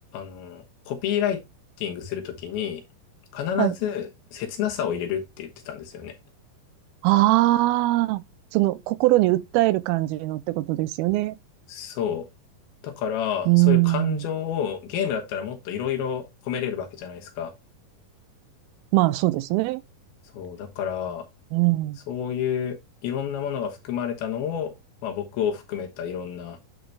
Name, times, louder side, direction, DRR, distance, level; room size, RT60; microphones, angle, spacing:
voice 1, 0.1-1.4 1.8-2.8 3.3-6.1 11.7-12.3 12.8-17.5 20.3-21.3 22.1-22.8 23.0-24.7 25.0-26.6, left 9 dB, 85° left, 3.2 m, -29 dB
voice 2, 7.0-8.2 8.5-11.4 13.5-14.2 18.9-19.8 21.5-22.0, right 18 dB, 90° right, 2.5 m, -21 dB
9.3 x 4.1 x 3.3 m
omnidirectional pair, 4.3 m